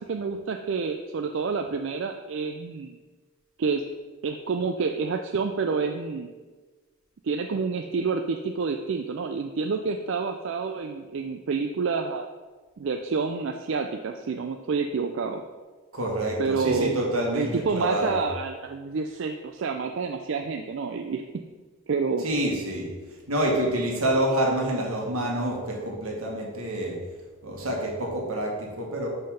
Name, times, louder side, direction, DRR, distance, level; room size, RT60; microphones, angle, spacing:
voice 1, 0.0-3.0 3.6-3.8 4.2-6.3 7.2-12.2 12.8-15.4 16.4-17.0 17.3-21.4 21.9-22.2, right 5 dB, 60° right, 5 dB, 0.4 m, -28 dB
voice 2, 15.9-18.2 22.2-27.0 27.4-29.1, right 1 dB, 85° right, -1 dB, 1.8 m, -27 dB
5.5 x 5.4 x 5.7 m, 1.4 s
head